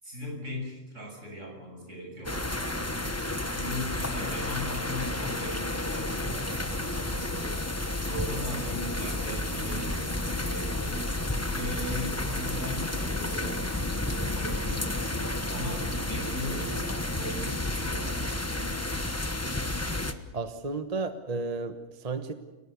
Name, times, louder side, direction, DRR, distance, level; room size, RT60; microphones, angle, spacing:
voice 1, 0.0-3.1 3.5-7.6 8.1-11.0 11.5-14.9 15.5-18.3, left 1 dB, 70° right, 0 dB, 7.7 m, -39 dB
sound 1, 2.3-20.1, left 1 dB, 10° left, 1.1 m, -31 dB
voice 2, 20.3-22.3, right 3 dB, 30° right, 8 dB, 1.2 m, -33 dB
29.0 x 18.5 x 7.0 m, 1.1 s
omnidirectional pair, 1.3 m